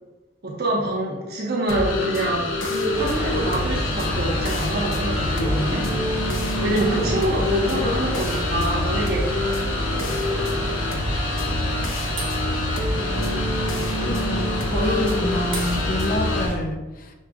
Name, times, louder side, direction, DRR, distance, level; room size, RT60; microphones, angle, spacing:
voice 1, 0.4-6.4 6.6-9.5 9.8-10.6 14.7-15.4, right 1 dB, 55° right, -3 dB, 1.3 m, -26 dB
sound 1, 1.7-16.5, left 2 dB, 85° left, 1.0 m, -27 dB
sound 2, 2.9-16.6, equal, 30° right, 1.3 m, -28 dB
voice 2, 14.0-17.1, left 1 dB, 45° left, 3 dB, 0.7 m, -27 dB
6.6 x 6.5 x 2.5 m, 1.1 s
head